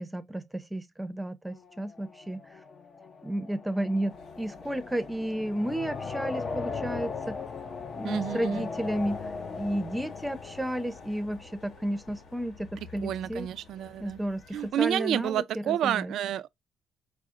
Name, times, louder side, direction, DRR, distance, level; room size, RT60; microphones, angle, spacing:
voice 1, 0.0-2.4 3.2-7.4 8.0-9.2 9.6-13.5 14.0-16.1, right 1 dB, 10° right, 0.6 m, -32 dB
sound 1, 1.5-12.3, left 4 dB, 45° left, 0.6 m, -39 dB
sound 2, 4.1-14.7, left 4 dB, 80° left, 1.4 m, -53 dB
voice 2, 8.0-8.7 13.0-14.2 14.5-16.5, right 11 dB, 80° right, 0.3 m, -30 dB
4.9 x 2.0 x 3.6 m
cardioid pair, 90°, 0 cm